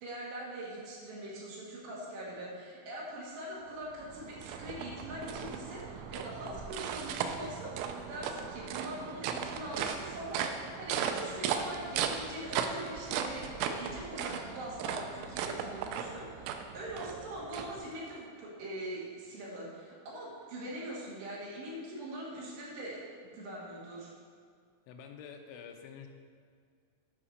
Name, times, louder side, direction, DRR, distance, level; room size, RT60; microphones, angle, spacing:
voice 1, 0.0-23.0 23.3-24.1, right 1 dB, 70° right, -5 dB, 3.9 m, -42 dB
sound 1, 3.7-18.2, right 7 dB, 85° right, 3.1 m, -37 dB
voice 2, 24.9-26.1, left 7 dB, 85° left, 4 dB, 3.1 m, -48 dB
9.9 x 5.0 x 6.5 m, 2.1 s
omnidirectional pair, 5.4 m